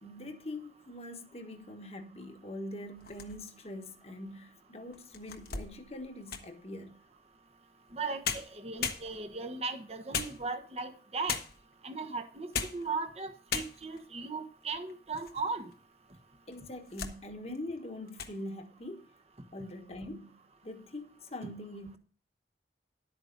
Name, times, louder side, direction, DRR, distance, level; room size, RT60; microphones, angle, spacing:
voice 1, 0.0-7.0 16.5-19.0 19.5-20.4 20.6-22.0, left 1 dB, 35° left, 1.3 m, -43 dB
sound 1, 2.9-3.7 4.3-4.4 4.9-6.6 7.9-8.0 8.2-9.5 10.1-10.8 11.3-11.7 12.3-12.9 13.2-13.3 13.5-14.1 14.6-15.4 15.7-15.8 16.5-17.2 17.5-17.8 18.1-18.4, left 6 dB, 55° left, 1.1 m, -37 dB
voice 2, 7.9-11.4 11.8-15.7, right 4 dB, 35° right, 1.1 m, -37 dB
11.5 x 8.8 x 4.0 m
head